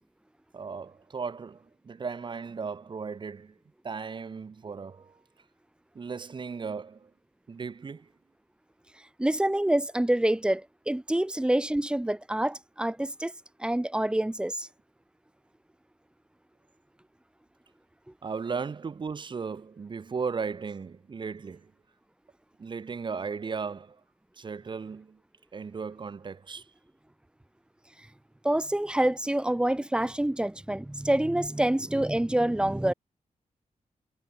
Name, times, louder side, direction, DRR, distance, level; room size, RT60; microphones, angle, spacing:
voice 1, 0.5-3.6 3.8-5.2 5.9-7.1 7.5-8.1 18.2-21.7 22.6-24.0 24.4-25.2 25.5-26.7, right 5 dB, 40° right, 2.6 m, -36 dB
voice 2, 9.2-13.3 13.6-14.7 28.4-32.9, right 1 dB, 5° right, 1.3 m, -26 dB
wide cardioid pair, 180°, 13 cm